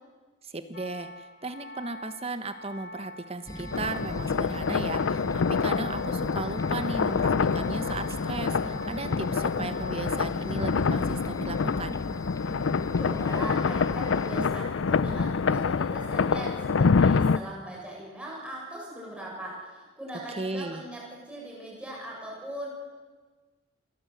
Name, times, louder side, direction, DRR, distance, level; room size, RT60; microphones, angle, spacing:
voice 1, 0.4-12.0 20.3-20.8, right 2 dB, 30° right, 9 dB, 1.3 m, -36 dB
sound 1, 0.7-10.7, equal, 55° left, 2.6 m, -45 dB
sound 2, 3.5-14.5, left 1 dB, 20° left, 0.7 m, -39 dB
sound 3, 3.7-17.4, left 5 dB, 80° left, 0.5 m, -26 dB
voice 2, 13.0-22.7, right 1 dB, 5° right, -4 dB, 7.2 m, -40 dB
28.5 x 12.0 x 7.9 m, 1.4 s
head